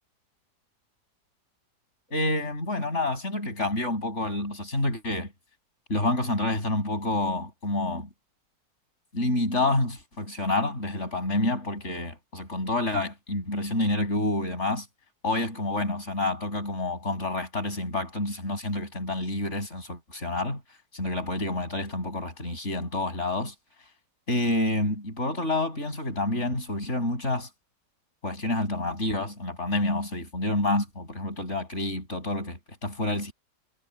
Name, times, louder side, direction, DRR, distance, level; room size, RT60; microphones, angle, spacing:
voice 1, 2.1-5.3 5.9-8.1 9.1-14.9 15.2-20.6 20.9-23.5 24.3-27.5 28.2-33.3, left 2 dB, 35° left, 7.7 m, -28 dB
omnidirectional pair, 2.0 m